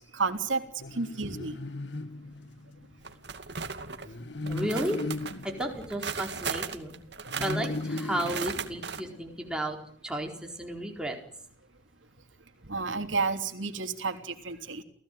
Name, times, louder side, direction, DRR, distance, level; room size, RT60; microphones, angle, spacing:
voice 1, 0.1-0.6 1.0-1.6 12.7-14.8, right 4 dB, 90° right, 6 dB, 3.3 m, -31 dB
sound 1, 0.8-2.9 4.0-6.7 7.3-9.5, left 2 dB, 70° left, 1.5 m, -37 dB
sound 2, 3.0-4.1 4.5-9.0, right 5 dB, 65° right, 2.4 m, -37 dB
voice 2, 4.4-5.0 5.4-7.0 7.4-9.8 10.0-11.2, right 1 dB, 5° right, 2 dB, 4.3 m, -33 dB
29.5 x 17.0 x 9.3 m, 0.62 s
head